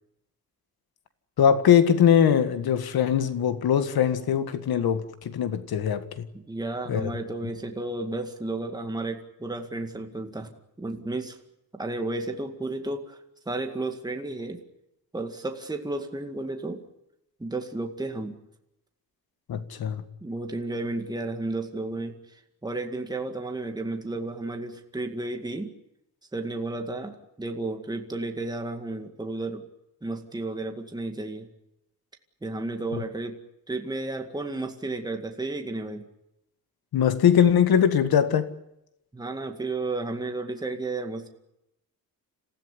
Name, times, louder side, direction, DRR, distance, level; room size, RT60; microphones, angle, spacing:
voice 1, 1.4-6.3 6.9-7.1 19.5-20.0 36.9-38.5, left 8 dB, 80° left, 1.9 m, -21 dB
voice 2, 6.3-10.5 10.8-11.4 11.7-13.2 13.5-14.6 15.1-16.9 17.4-18.4 20.2-25.7 26.3-29.6 30.0-31.5 32.4-33.4 33.7-36.1 39.1-41.3, right 2 dB, 10° right, 2.1 m, -32 dB
27.5 x 15.5 x 10.0 m
wide cardioid pair, 160°, 36 cm